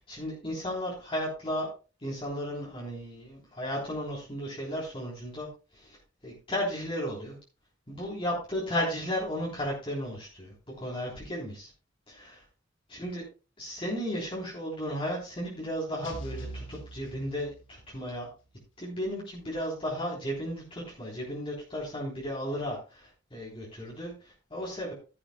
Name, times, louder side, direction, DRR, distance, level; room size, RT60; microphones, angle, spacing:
voice 1, 0.1-1.7 2.0-6.0 6.2-7.4 7.9-11.7 12.1-12.4 12.9-13.2 13.6-18.3 18.8-24.9, equal, 30° left, -4 dB, 3.5 m, -34 dB
sound 1, 16.0-17.9, right 2 dB, 80° left, 3.1 m, -42 dB
13.0 x 11.0 x 2.2 m, 0.33 s
head